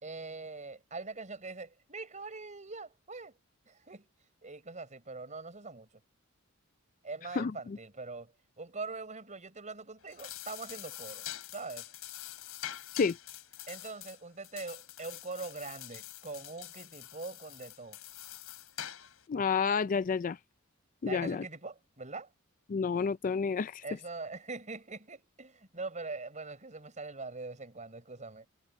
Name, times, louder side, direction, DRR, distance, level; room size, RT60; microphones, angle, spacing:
voice 1, 0.0-3.4 3.7-4.1 4.4-5.9 7.0-11.3 11.5-11.9 13.7-18.0 21.0-22.3 23.8-28.5, right 3 dB, 35° right, 5.7 m, -43 dB
voice 2, 7.4-7.8 12.9-13.2 19.3-20.4 21.0-21.4 22.7-23.8, left 5 dB, 40° left, 0.4 m, -30 dB
sound 1, 10.0-19.3, left 12 dB, 90° left, 3.6 m, -45 dB
head